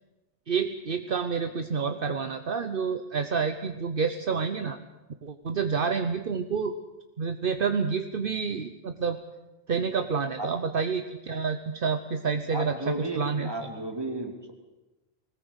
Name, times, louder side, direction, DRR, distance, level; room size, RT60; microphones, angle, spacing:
voice 1, 0.5-4.8 5.2-6.7 7.2-9.2 9.7-13.5, right 5 dB, 60° right, 8 dB, 1.1 m, -28 dB
voice 2, 12.5-14.5, right 1 dB, 25° right, 3 dB, 2.9 m, -34 dB
20.5 x 19.5 x 8.1 m, 1.0 s
omnidirectional pair, 1.0 m